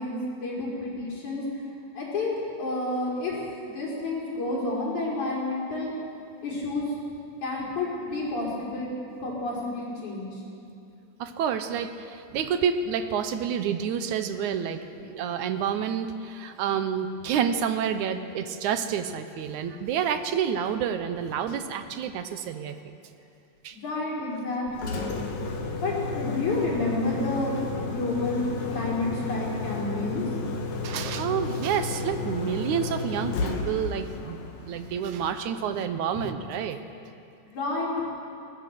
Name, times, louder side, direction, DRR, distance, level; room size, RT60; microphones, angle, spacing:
voice 1, 0.0-1.4 1.9-3.3 3.6-5.9 6.4-6.9 7.4-8.9 9.2-10.4 23.7-25.2 25.8-30.3 37.4-38.0, left 2 dB, 55° left, -4 dB, 6.4 m, -30 dB
voice 2, 11.2-22.9 23.6-23.8 30.8-36.8, right 8 dB, 70° right, 9 dB, 2.1 m, -29 dB
Engine, 24.7-35.6, left 3 dB, 70° left, 3.5 m, -33 dB
22.0 x 20.5 x 7.6 m, 2.6 s
omnidirectional pair, 4.0 m